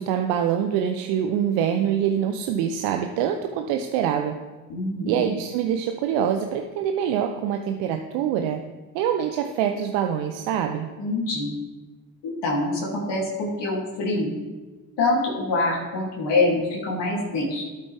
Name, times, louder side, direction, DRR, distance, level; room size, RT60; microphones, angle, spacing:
voice 1, 0.0-4.4 5.1-8.6 8.9-10.9, right 9 dB, 75° right, 5 dB, 0.8 m, -25 dB
voice 2, 4.7-5.2 11.0-11.5 12.2-14.3 15.0-17.7, left 2 dB, 65° left, -3 dB, 3.0 m, -25 dB
12.5 x 8.4 x 3.4 m, 1.2 s
hypercardioid pair, 45°, 46 cm